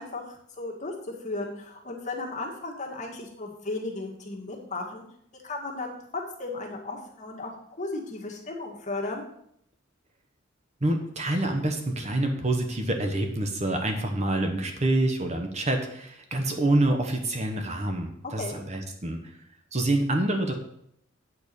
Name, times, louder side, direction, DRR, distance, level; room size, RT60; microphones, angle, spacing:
voice 1, 0.0-5.1 5.4-5.9 6.4-7.5 7.8-9.2 18.4-18.6, left 2 dB, 40° left, -1 dB, 1.7 m, -35 dB
voice 2, 10.8-19.2 19.7-20.5, right 1 dB, 35° right, 4 dB, 1.1 m, -27 dB
8.5 x 4.6 x 6.8 m, 0.72 s
head